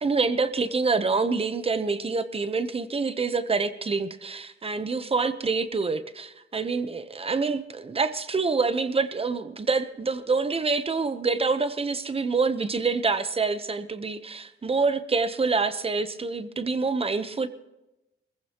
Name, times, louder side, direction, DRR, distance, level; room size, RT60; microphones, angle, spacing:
voice 1, 0.0-17.5, right 4 dB, 25° right, 11 dB, 0.9 m, -26 dB
24.0 x 15.5 x 3.0 m, 0.97 s
wide cardioid pair, 150°, 21 cm